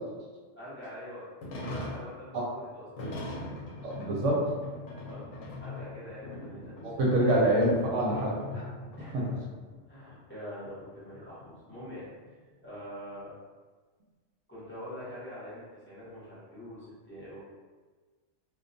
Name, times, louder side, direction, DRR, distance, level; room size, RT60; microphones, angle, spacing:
voice 1, 0.6-1.3 1.5-2.8 5.0-5.3 5.6-7.3 9.0-9.3 9.9-12.1 12.6-13.3 14.5-17.4, equal, 10° left, -12 dB, 0.8 m, -44 dB
sound 1, 1.4-9.8 10.1-10.2 10.6-10.7 11.1-12.8, left 2 dB, 75° left, 0.9 m, -41 dB
voice 2, 3.8-4.4 6.8-8.7 9.1-9.2, right 1 dB, 80° right, -3 dB, 0.9 m, -26 dB
2.3 x 2.2 x 2.5 m, 1.4 s
omnidirectional pair, 1.3 m